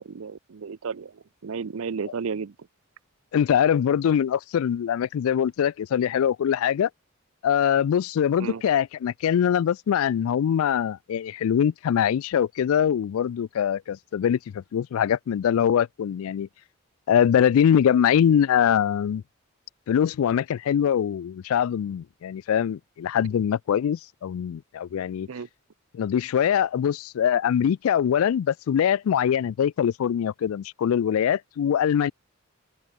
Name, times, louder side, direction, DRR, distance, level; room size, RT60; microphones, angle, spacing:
voice 1, 0.0-2.5 8.4-8.6 25.3-25.5, right 5 dB, 70° right, 0.5 m, -33 dB
voice 2, 3.3-6.9 7.4-16.5 17.1-19.2 19.9-25.3 25.9-32.1, left 8 dB, 75° left, 0.3 m, -23 dB
open air
head